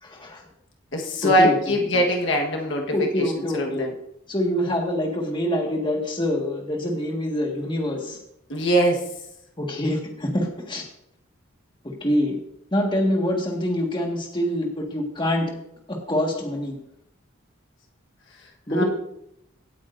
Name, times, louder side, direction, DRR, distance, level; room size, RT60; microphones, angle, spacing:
voice 1, 0.0-0.5 1.2-2.0 2.9-3.9 4.3-8.2 9.6-10.8 11.8-12.4 12.7-15.5 15.9-16.8 18.7-18.8, left 1 dB, 25° left, 0 dB, 1.8 m, -25 dB
voice 2, 0.9-3.9 8.5-9.1 18.7-18.8, equal, 65° left, 0 dB, 1.4 m, -22 dB
17.0 x 8.7 x 2.6 m, 0.77 s
head